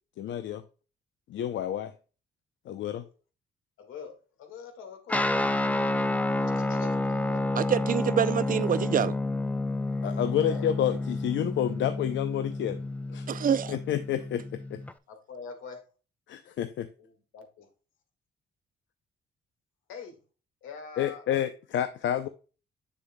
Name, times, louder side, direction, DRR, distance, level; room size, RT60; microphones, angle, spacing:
voice 1, 0.2-0.6 1.3-1.9 2.7-3.0 10.0-13.3 13.7-14.8 16.3-16.9 21.0-22.3, left 10 dB, 70° left, 0.6 m, -29 dB
voice 2, 3.8-5.3 6.4-7.5 7.9-8.2 10.4-10.7 15.1-15.8 17.0-17.7 19.9-20.2 20.6-21.2, left 6 dB, 90° left, 1.8 m, -44 dB
Guitar, 5.1-14.9, left 2 dB, 5° left, 0.5 m, -30 dB
voice 3, 7.6-9.2 13.3-13.8, right 8 dB, 45° right, 0.5 m, -26 dB
7.2 x 6.8 x 2.2 m
cardioid pair, 90°, 20 cm